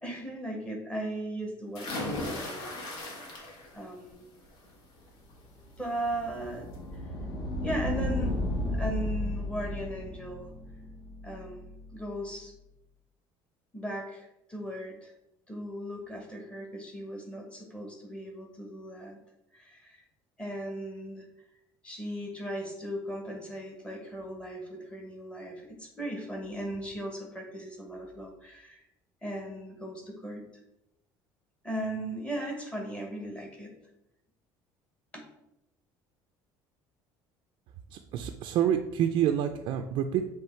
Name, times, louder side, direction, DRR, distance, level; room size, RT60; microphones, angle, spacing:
voice 1, 0.0-2.9 3.7-4.2 5.8-7.0 7.6-8.4 8.7-10.5 11.2-12.5 13.7-15.1 15.5-19.2 19.5-20.0 20.4-21.3 21.8-28.8 29.2-30.4 31.6-33.7 35.1-35.2, right 1 dB, 10° left, 1 dB, 1.2 m, -37 dB
sound 1, 1.8-3.8 4.2-4.7 6.1-6.2 6.6-6.7, left 1 dB, 75° left, 1.5 m, -37 dB
sound 2, 5.3-12.2, left 1 dB, 45° left, 1.1 m, -34 dB
voice 2, 37.9-40.2, right 10 dB, 60° right, 5 dB, 0.4 m, -28 dB
7.3 x 3.1 x 4.4 m, 0.86 s
cardioid pair, 150°, 9 cm